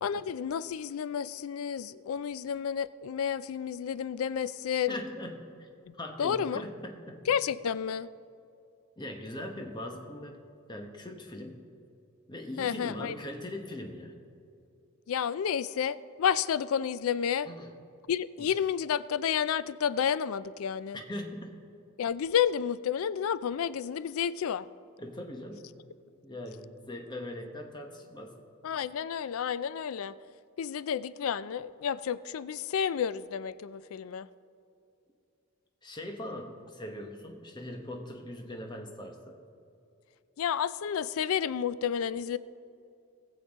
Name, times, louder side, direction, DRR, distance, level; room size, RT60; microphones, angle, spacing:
voice 1, 0.0-4.9 5.9-6.0 6.2-6.6 7.3-8.1 12.6-13.2 15.1-17.5 18.1-21.0 22.0-24.7 28.6-30.1 30.6-34.3 40.4-42.4, left 8 dB, 80° left, 16 dB, 0.4 m, -31 dB
voice 2, 4.9-5.7 6.0-7.2 9.0-10.4 10.7-11.6 12.3-14.2 17.4-17.7 18.4-18.5 20.9-21.5 25.0-25.7 26.2-28.4 35.8-39.4, left 1 dB, 20° left, 3 dB, 1.1 m, -40 dB
19.5 x 7.2 x 3.6 m, 2.6 s
head